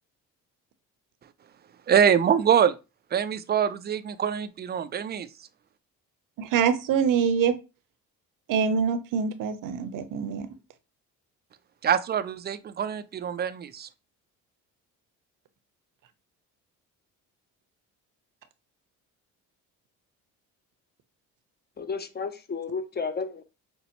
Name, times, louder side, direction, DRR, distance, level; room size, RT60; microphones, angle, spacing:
voice 1, 1.9-2.7 3.1-5.3 11.8-13.9, right 8 dB, 30° right, 0.4 m, -24 dB
voice 2, 6.4-7.6 8.5-10.5, right 7 dB, 60° right, 0.7 m, -25 dB
voice 3, 21.8-23.4, left 5 dB, 25° left, 0.6 m, -32 dB
5.3 x 2.1 x 2.8 m
supercardioid pair, 75°, 37 cm